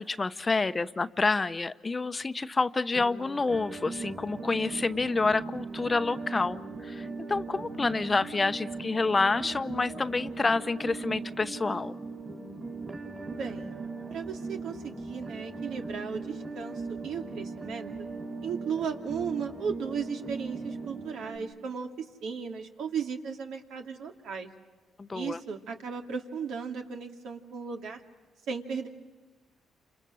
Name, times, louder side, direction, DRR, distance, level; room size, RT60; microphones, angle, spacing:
voice 1, 0.0-12.0 25.0-25.4, left 3 dB, 25° left, 12 dB, 0.8 m, -28 dB
sound 1, 2.9-21.4, right 3 dB, 35° right, 4.8 m, -39 dB
voice 2, 13.3-13.7 14.1-17.9 18.4-24.5 25.1-28.0 28.5-28.9, right 6 dB, 80° right, 3 dB, 2.4 m, -36 dB
30.0 x 27.5 x 6.4 m, 1.3 s
cardioid pair, 90°, 0 cm